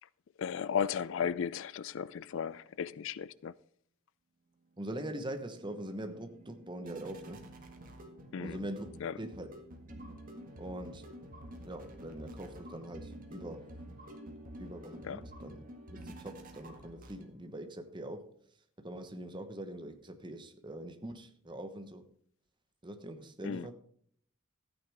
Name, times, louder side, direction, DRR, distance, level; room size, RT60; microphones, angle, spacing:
voice 1, 0.4-3.5 8.3-8.6 9.0-9.1 15.0-15.2 23.4-23.7, left 7 dB, 60° left, 0.4 m, -35 dB
sound 1, 4.7-17.6, right 1 dB, 40° right, 1.8 m, -49 dB
voice 2, 4.8-7.4 8.4-8.9 9.2-9.5 10.6-11.1 11.6-13.7 14.6-18.3 18.8-22.0 22.8-23.7, right 1 dB, 20° right, 1.1 m, -43 dB
14.0 x 9.2 x 3.5 m
head